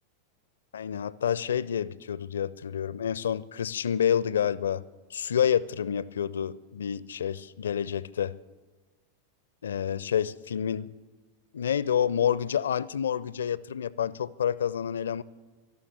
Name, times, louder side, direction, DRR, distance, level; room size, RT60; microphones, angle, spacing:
voice 1, 0.7-4.8 5.1-8.4 9.6-10.9 11.5-15.2, left 9 dB, 65° left, 0.4 m, -28 dB
13.0 x 12.0 x 8.0 m
figure-of-eight pair, 90°, 0 cm